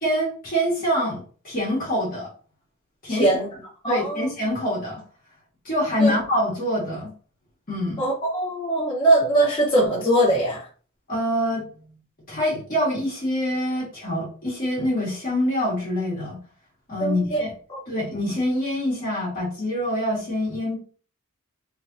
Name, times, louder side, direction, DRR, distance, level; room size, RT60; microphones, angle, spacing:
voice 1, 0.0-2.3 3.0-3.4 3.9-5.0 5.7-7.1 7.7-8.0 11.1-11.7 12.3-16.4 16.9-17.5 17.9-20.8, equal, 40° left, -6 dB, 1.7 m, -25 dB
voice 2, 3.1-3.5 3.8-4.3 6.0-6.1 8.0-10.7 17.0-17.4 17.7-17.8, right 1 dB, 20° left, -6 dB, 1.7 m, -21 dB
3.3 x 3.3 x 2.7 m, 0.40 s
head